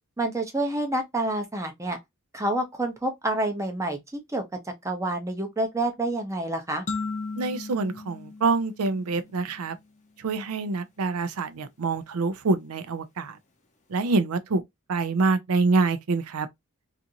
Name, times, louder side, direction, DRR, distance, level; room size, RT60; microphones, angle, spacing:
voice 1, 0.2-2.0 2.3-4.0 4.3-4.4 4.8-6.8, right 1 dB, 15° right, 0.6 m, -28 dB
sound 1, 6.9-9.5, left 3 dB, 35° left, 0.5 m, -36 dB
voice 2, 7.4-9.8 10.2-13.4 13.9-14.6 14.9-16.5, right 3 dB, 80° right, 0.5 m, -26 dB
2.5 x 2.5 x 2.7 m
head